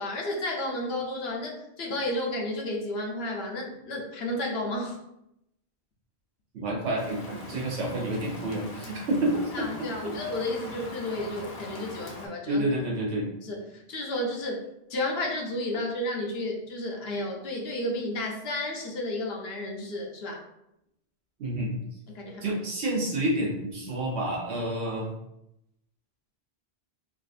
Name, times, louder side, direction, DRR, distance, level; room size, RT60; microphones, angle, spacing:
voice 1, 0.0-5.0 9.5-12.7 13.4-14.6 14.9-20.4 22.1-22.6, left 1 dB, 70° left, 0 dB, 0.9 m, -32 dB
voice 2, 6.5-9.6 12.5-13.3 21.4-21.7 22.4-25.1, right 1 dB, 85° right, -2 dB, 1.2 m, -29 dB
Rain, 7.0-12.3, left 1 dB, 45° left, 0.6 m, -41 dB
3.7 x 2.4 x 2.4 m, 0.82 s
omnidirectional pair, 1.1 m